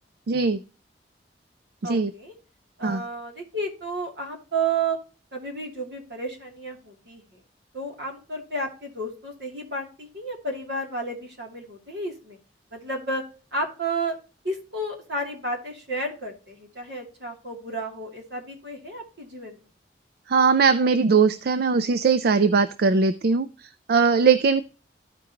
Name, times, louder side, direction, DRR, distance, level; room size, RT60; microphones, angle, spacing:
voice 1, 0.3-0.6 1.8-2.1 2.8-3.0 20.3-24.6, right 5 dB, 60° right, 12 dB, 0.4 m, -20 dB
voice 2, 1.8-2.3 2.8-5.0 5.3-7.4 7.7-12.4 12.7-13.2 13.5-14.1 14.4-19.6, right 2 dB, 80° right, 1 dB, 2.6 m, -32 dB
14.0 x 5.1 x 2.8 m, 0.36 s
head